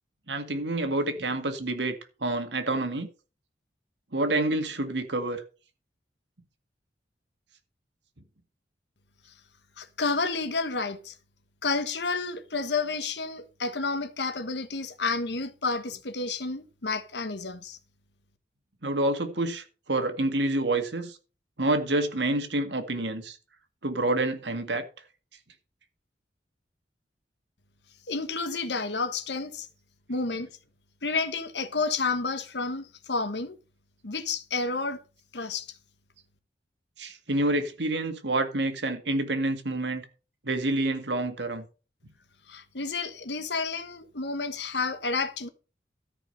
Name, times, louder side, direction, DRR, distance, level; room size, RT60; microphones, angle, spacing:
voice 1, 0.3-3.1 4.1-5.4 18.8-21.2 21.6-23.4 23.8-24.9 37.0-40.0 40.4-41.7, right 2 dB, 80° right, 2.0 m, -28 dB
voice 2, 9.8-11.1 11.6-17.8 28.1-29.7 30.1-30.5 31.0-33.6 34.0-35.0 35.3-35.8 42.5-45.5, left 4 dB, 70° left, 1.4 m, -30 dB
13.5 x 5.0 x 6.5 m
head